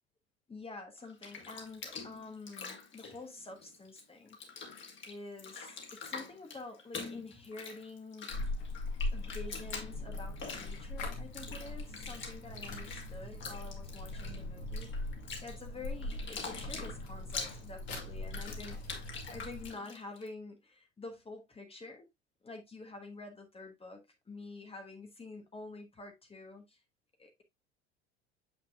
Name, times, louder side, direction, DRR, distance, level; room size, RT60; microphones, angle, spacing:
voice 1, 0.5-4.4 5.0-8.3 9.1-14.9 15.4-18.8 19.2-22.1 22.4-26.8 27.2-27.4, left 3 dB, 15° left, 1.3 m, -48 dB
Bathtub (filling or washing), 1.0-4.0 4.3-20.3, left 5 dB, 35° left, 2.1 m, -45 dB
sound 1, 8.3-19.7, left 2 dB, 65° left, 2.5 m, -40 dB
7.3 x 6.1 x 2.3 m
figure-of-eight pair, 65°, 34 cm